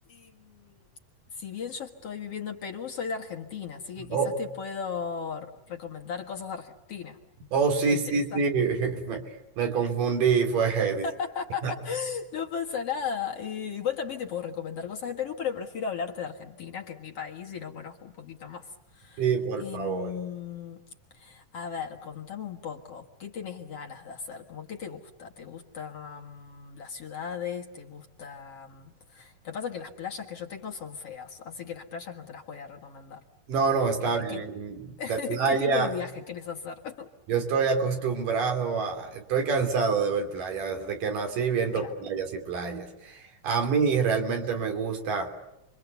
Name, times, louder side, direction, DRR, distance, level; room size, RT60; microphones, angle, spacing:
voice 1, 0.1-0.9 1.3-7.2 7.9-8.4 11.0-19.3 19.6-20.8 21.1-33.2 34.0-34.4 35.0-37.1 41.7-41.9, left 7 dB, 50° left, 2 dB, 2.3 m, -36 dB
voice 2, 4.0-4.4 7.5-11.1 11.6-11.7 19.2-20.1 33.5-35.9 37.3-45.3, right 5 dB, 75° right, 5 dB, 4.6 m, -27 dB
30.0 x 24.0 x 8.2 m, 0.90 s
omnidirectional pair, 3.9 m